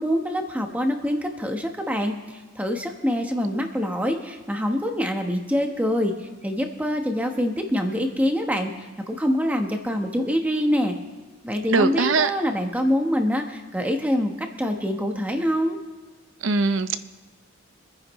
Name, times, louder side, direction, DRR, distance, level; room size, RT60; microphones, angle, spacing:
voice 1, 0.0-10.9 11.4-15.8, equal, 5° right, 4 dB, 1.1 m, -25 dB
voice 2, 11.7-12.3 16.4-17.0, right 4 dB, 70° right, 11 dB, 0.7 m, -21 dB
25.5 x 10.0 x 3.1 m, 1.3 s
head